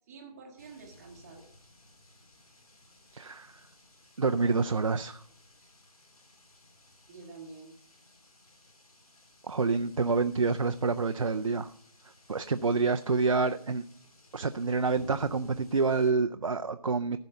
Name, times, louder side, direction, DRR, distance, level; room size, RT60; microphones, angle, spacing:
voice 1, 0.1-1.5 7.1-7.7, right 4 dB, 10° right, -7 dB, 0.9 m, -48 dB
sound 1, 0.6-16.1, left 1 dB, 65° left, 3.4 m, -56 dB
voice 2, 3.1-3.6 4.2-5.2 9.5-11.7 12.3-13.8 14.3-17.2, right 4 dB, 55° right, 9 dB, 0.5 m, -27 dB
14.5 x 5.3 x 6.8 m, 0.66 s
figure-of-eight pair, 160°, 20 cm